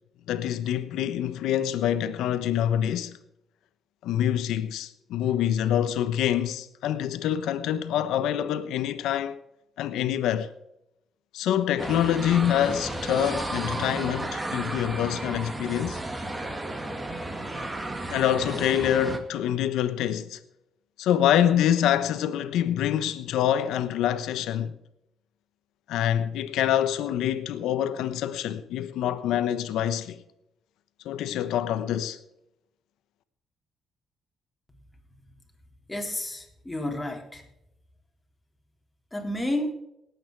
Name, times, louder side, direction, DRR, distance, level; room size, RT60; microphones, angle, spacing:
voice 1, 0.3-3.1 4.0-9.4 9.8-10.5 11.3-16.0 18.1-20.4 21.0-24.8 25.9-30.2 31.0-32.2, left 10 dB, 85° left, 1.0 m, -26 dB
sound 1, 11.8-19.2, right 1 dB, 20° right, 2.1 m, -33 dB
voice 2, 35.9-37.5 39.1-39.7, left 1 dB, 10° left, 3.5 m, -31 dB
18.5 x 8.9 x 4.7 m
cardioid pair, 90°, 0 cm